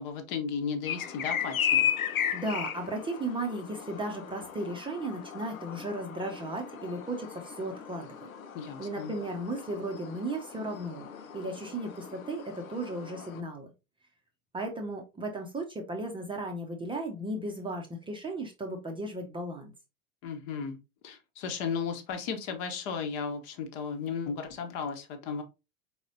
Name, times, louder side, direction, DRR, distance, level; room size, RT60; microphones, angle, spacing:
voice 1, 0.0-1.9 8.5-9.1 20.2-20.8 21.0-25.4, left 6 dB, 40° left, 6 dB, 1.1 m, -35 dB
sound 1, 0.9-13.4, left 9 dB, 70° left, 0.7 m, -36 dB
voice 2, 2.3-8.1 8.8-11.1 11.3-13.7 14.5-19.7, right 1 dB, 10° right, 3 dB, 0.8 m, -35 dB
4.9 x 4.0 x 2.7 m, 0.26 s
figure-of-eight pair, 85°, 43 cm